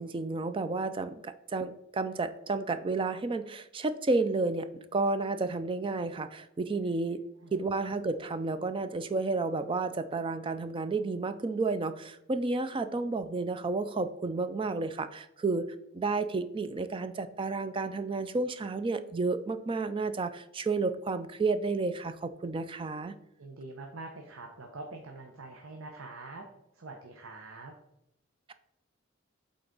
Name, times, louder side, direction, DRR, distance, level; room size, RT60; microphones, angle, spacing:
voice 1, 0.0-7.2 7.5-15.6 15.9-23.1, right 3 dB, 25° right, 11 dB, 0.4 m, -31 dB
voice 2, 23.4-26.4 26.8-27.7, right 2 dB, 75° right, 3 dB, 0.8 m, -45 dB
7.9 x 3.9 x 3.9 m, 0.82 s
head